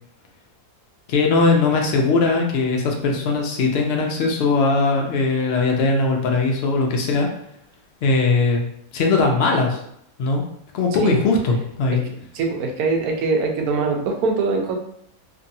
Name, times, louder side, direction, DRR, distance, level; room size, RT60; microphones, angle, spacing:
voice 1, 1.1-7.3 8.0-8.7 8.9-9.8 10.2-10.4 10.7-12.0, left 3 dB, 75° left, 1 dB, 0.5 m, -19 dB
voice 2, 12.3-14.7, right 3 dB, 80° right, 2 dB, 1.1 m, -22 dB
2.8 x 2.5 x 2.6 m, 0.73 s
omnidirectional pair, 1.6 m